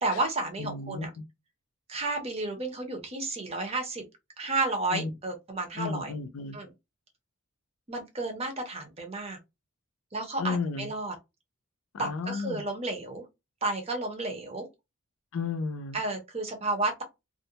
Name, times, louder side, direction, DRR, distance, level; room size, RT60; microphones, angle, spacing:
voice 1, 0.0-1.1 1.9-4.0 4.4-6.1 6.5-6.7 7.9-9.4 10.1-11.1 12.0-13.2 13.6-14.7 15.9-17.0, right 2 dB, 30° right, 0.6 m, -32 dB
voice 2, 0.6-1.1 4.9-5.1 5.8-6.6 10.4-10.9 11.9-12.6 15.3-16.0, left 4 dB, 85° left, 0.4 m, -33 dB
2.4 x 2.1 x 2.7 m
head